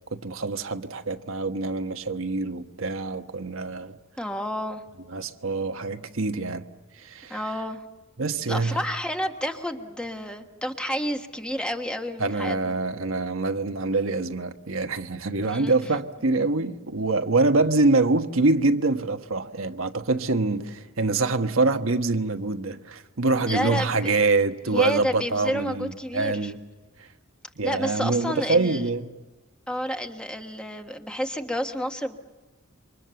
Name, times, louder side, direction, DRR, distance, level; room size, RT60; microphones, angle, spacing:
voice 1, 0.1-3.9 5.1-6.6 7.0-7.4 8.2-8.8 12.2-26.6 27.6-29.1, right 3 dB, 65° right, 1.3 m, -25 dB
voice 2, 4.2-4.8 7.3-7.8 8.5-12.7 15.4-15.9 23.5-24.2 24.7-26.5 27.6-28.9 29.7-32.2, equal, 5° left, 1.4 m, -30 dB
28.0 x 25.0 x 7.0 m
head